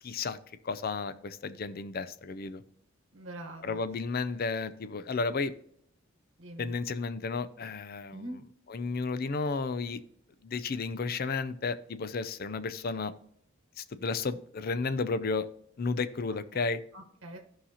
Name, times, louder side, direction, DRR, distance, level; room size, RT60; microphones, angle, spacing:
voice 1, 0.0-0.4 0.6-2.6 3.6-5.5 6.6-8.4 8.7-10.0 10.4-13.1 13.8-15.5 15.8-16.8, left 4 dB, 45° left, 0.5 m, -33 dB
voice 2, 3.1-3.8 6.4-6.7 8.1-8.4 16.9-17.4, right 1 dB, 70° right, 1.1 m, -43 dB
14.0 x 5.7 x 2.8 m
head